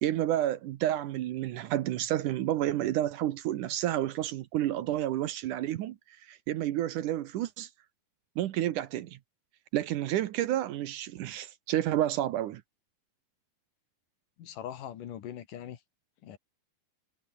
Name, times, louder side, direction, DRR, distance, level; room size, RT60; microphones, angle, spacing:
voice 1, 0.0-6.0 6.2-7.7 8.4-9.2 9.7-12.6, right 13 dB, 70° right, 2.3 m, -30 dB
voice 2, 14.4-15.8 16.2-16.4, left 10 dB, 70° left, 3.2 m, -41 dB
omnidirectional pair, 4.1 m